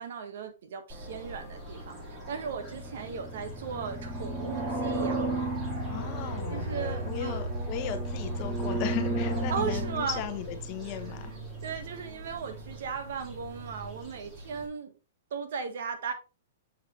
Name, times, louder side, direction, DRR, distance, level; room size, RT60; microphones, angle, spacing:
voice 1, 0.0-5.3 6.5-7.4 9.5-10.2 11.6-14.9 15.3-16.1, right 6 dB, 65° right, 1.4 m, -37 dB
sound 1, 0.9-14.7, right 1 dB, 20° right, 2.2 m, -34 dB
voice 2, 5.9-6.7 7.0-11.3, left 11 dB, 35° left, 0.9 m, -37 dB
6.6 x 4.8 x 3.2 m
hypercardioid pair, 160°, 0 cm